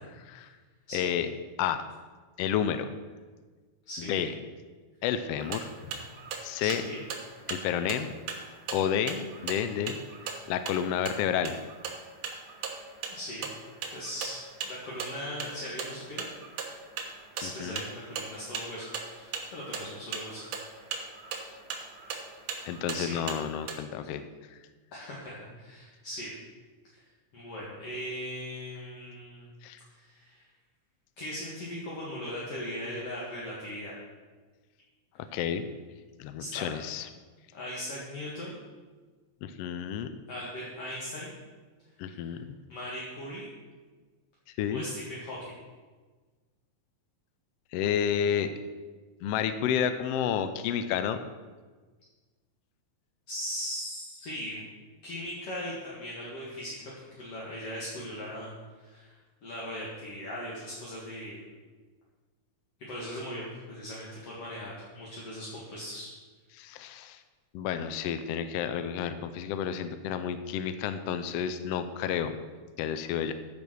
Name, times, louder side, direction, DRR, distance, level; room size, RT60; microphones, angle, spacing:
voice 1, 0.9-1.3 1.6-1.8 2.4-2.9 4.0-4.3 5.0-5.7 6.4-6.8 7.5-8.1 8.7-10.0 10.5-11.6 17.4-17.8 22.6-24.2 29.6-29.8 35.3-35.7 36.2-37.1 39.4-40.1 42.0-42.4 44.6-44.9 47.7-48.5 49.2-51.2 66.5-67.2 67.5-72.4 72.8-73.3, left 9 dB, 80° left, 10 dB, 1.5 m, -30 dB
voice 2, 3.9-4.2 6.6-7.0 13.1-13.5 13.9-16.3 17.4-18.9 19.1-20.4 22.9-23.2 24.9-26.3 27.3-29.5 29.9-30.4 31.2-33.9 36.4-36.7 37.5-38.6 40.3-41.3 42.2-42.4 42.7-43.5 44.7-45.5 53.3-54.6 55.0-58.5 58.8-59.1 59.4-61.4 62.9-66.1, equal, 55° left, -6 dB, 2.8 m, -39 dB
sound 1, 5.4-23.8, right 5 dB, 70° right, 2.3 m, -39 dB
14.0 x 5.3 x 6.2 m, 1.4 s
omnidirectional pair, 3.3 m